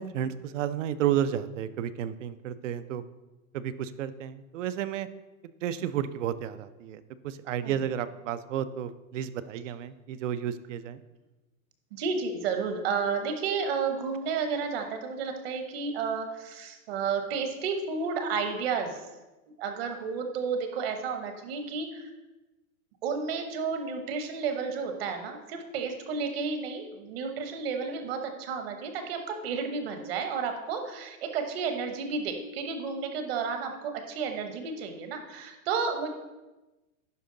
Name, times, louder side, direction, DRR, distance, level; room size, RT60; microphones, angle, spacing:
voice 1, 0.0-3.0 3.5-5.1 5.6-11.0, right 10 dB, 60° right, 14 dB, 0.6 m, -32 dB
voice 2, 11.9-19.0 19.6-22.1 23.0-36.1, right 5 dB, 45° right, 6 dB, 1.0 m, -32 dB
11.0 x 4.6 x 3.8 m, 1.1 s
supercardioid pair, 170°, 42 cm